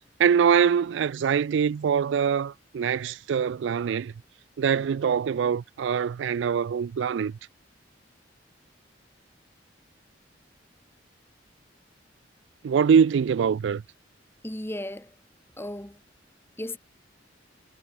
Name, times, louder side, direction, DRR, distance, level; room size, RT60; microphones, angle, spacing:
voice 1, 0.2-4.1 4.6-7.3 12.6-13.8, right 7 dB, 75° right, 0.3 m, -23 dB
voice 2, 14.4-15.1 15.6-16.0 16.6-16.8, left 1 dB, 10° left, 1.6 m, -35 dB
head